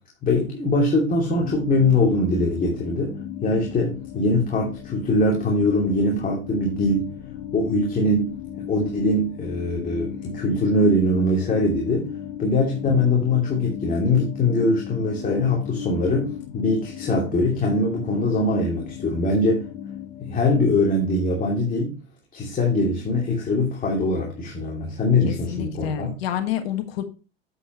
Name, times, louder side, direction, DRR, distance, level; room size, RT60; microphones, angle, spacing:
voice 1, 0.2-7.1 7.5-12.1 12.4-19.7 20.2-22.0 22.3-26.1, left 2 dB, 25° left, 2.7 m, -22 dB
sound 1, 1.3-21.1, left 9 dB, 50° left, 1.7 m, -36 dB
voice 2, 25.2-27.0, left 11 dB, 70° left, 1.4 m, -29 dB
8.3 x 7.7 x 3.0 m
hypercardioid pair, 90°, 31 cm